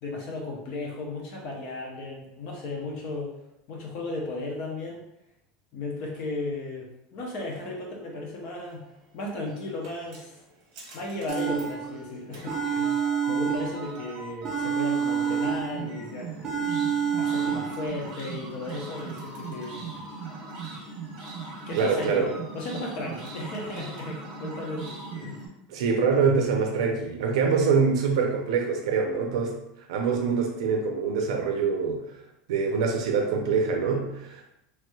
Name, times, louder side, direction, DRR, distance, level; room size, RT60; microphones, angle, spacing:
voice 1, 0.0-3.3 3.7-5.0 5.7-8.8 9.1-10.4 10.9-20.1 21.7-25.4, left 2 dB, 40° left, -2 dB, 0.6 m, -35 dB
sound 1, 9.2-25.5, right 4 dB, 50° right, 0.9 m, -40 dB
sound 2, 11.3-12.1 12.5-14.1 14.4-16.0 16.4-17.9, right 7 dB, 15° right, 0.4 m, -28 dB
voice 2, 21.8-22.3 25.7-29.6 29.9-32.1 32.5-34.4, right 5 dB, 90° right, 2 dB, 0.5 m, -24 dB
3.1 x 3.0 x 2.3 m, 0.83 s
supercardioid pair, 180°, 3 cm